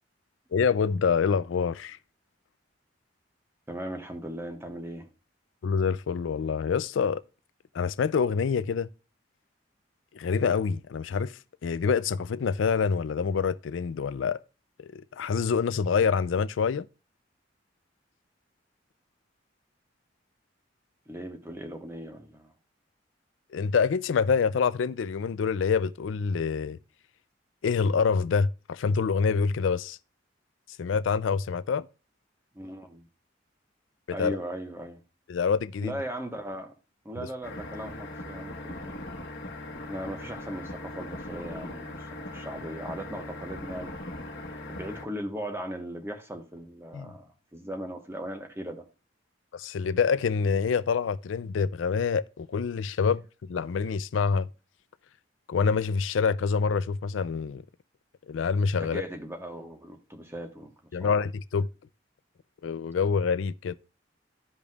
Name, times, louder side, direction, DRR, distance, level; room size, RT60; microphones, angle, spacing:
voice 1, 0.5-2.0 5.6-7.2 7.7-8.9 10.1-11.3 11.6-14.4 14.8-16.9 23.5-26.8 27.6-30.0 30.8-31.9 34.2-34.4 35.3-35.9 46.9-47.1 49.5-53.2 53.5-54.5 55.5-57.6 58.3-59.0 60.9-61.7 62.6-63.8, left 5 dB, 85° left, 0.4 m, -26 dB
voice 2, 3.7-5.1 21.1-22.5 32.5-33.1 34.1-35.0 35.8-36.7 37.0-39.0 39.8-43.9 44.7-48.8 58.8-60.7 61.0-61.1, right 1 dB, 15° right, 1.1 m, -38 dB
sound 1, 37.4-45.1, left 1 dB, 60° left, 1.2 m, -40 dB
14.0 x 5.2 x 2.3 m
head